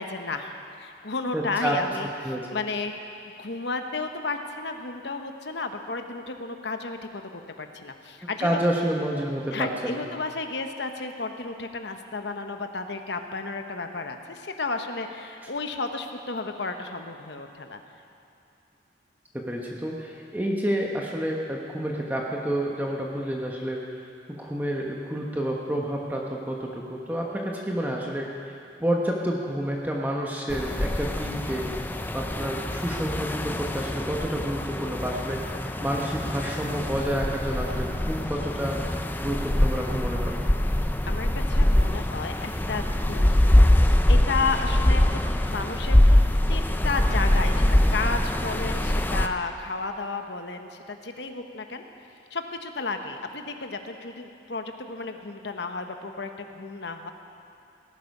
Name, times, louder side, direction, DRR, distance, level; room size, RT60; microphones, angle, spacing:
voice 1, 0.0-2.9 3.4-8.6 9.5-17.8 41.0-43.4 43.7-45.2 45.5-46.2 46.5-51.8 52.3-57.1, left 3 dB, 65° left, 6 dB, 1.0 m, -33 dB
voice 2, 1.3-1.8 2.2-2.5 8.4-10.0 19.3-23.9 24.4-31.7 32.1-40.5, equal, 10° right, -1 dB, 1.1 m, -29 dB
sound 1, 30.5-49.3, left 1 dB, 10° left, 0.4 m, -23 dB
18.0 x 11.0 x 5.4 m, 2.6 s
head